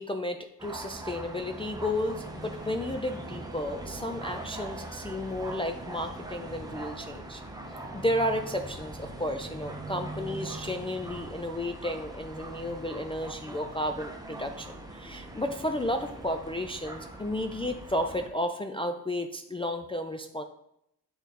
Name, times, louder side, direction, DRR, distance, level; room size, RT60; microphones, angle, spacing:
voice 1, 0.0-7.4 7.9-20.4, left 1 dB, 15° left, 4 dB, 0.3 m, -33 dB
sound 1, 0.6-18.3, right 1 dB, 10° right, 0.7 m, -41 dB
8.1 x 3.9 x 4.1 m, 0.76 s
wide cardioid pair, 145°, 39 cm